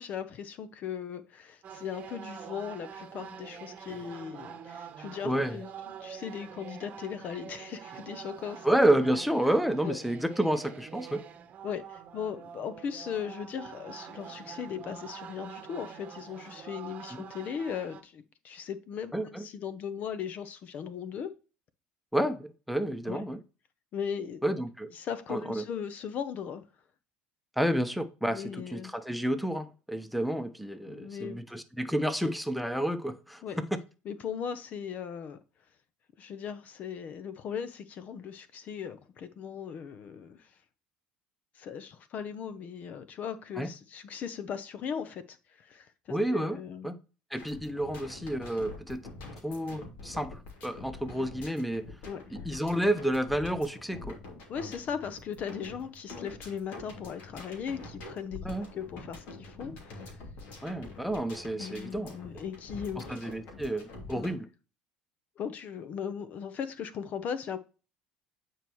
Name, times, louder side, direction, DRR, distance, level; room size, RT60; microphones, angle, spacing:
voice 1, 0.0-8.7 9.8-10.0 11.6-21.3 23.1-23.3 23.9-24.4 24.9-26.6 28.3-28.9 30.9-31.4 33.4-33.6 34.1-35.4 36.2-40.5 41.6-46.9 52.1-52.2 54.5-58.4 58.7-60.2 61.6-63.1 64.2-64.3 65.4-67.6, left 7 dB, 50° left, 0.7 m, -38 dB
sound 1, 1.6-18.0, right 8 dB, 45° right, 0.9 m, -46 dB
voice 2, 5.2-5.6 8.6-11.2 19.1-19.5 22.1-23.4 24.4-24.9 25.3-25.6 27.6-33.4 43.6-43.7 46.1-47.0 47.3-49.0 49.4-51.8 52.4-54.1 58.4-58.7 60.6-62.1 63.1-64.5, right 1 dB, ahead, 0.9 m, -30 dB
sound 2, 47.4-64.3, left 3 dB, 70° left, 2.6 m, -46 dB
9.0 x 4.6 x 3.1 m
supercardioid pair, 90°, 3 cm